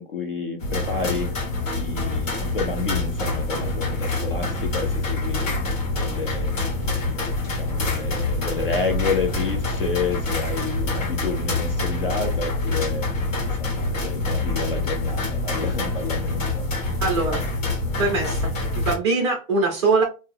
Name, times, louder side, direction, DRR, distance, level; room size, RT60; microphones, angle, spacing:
voice 1, 0.0-1.4 1.8-7.1 7.4-13.1 13.4-16.7, left 4 dB, 45° left, 4 dB, 0.4 m, -30 dB
sound 1, 0.6-19.0, left 2 dB, 60° left, 1.6 m, -26 dB
voice 2, 17.0-17.4 18.0-20.0, right 3 dB, 20° right, -1 dB, 0.6 m, -22 dB
2.7 x 2.3 x 3.2 m, 0.31 s
hypercardioid pair, 175°, 43 cm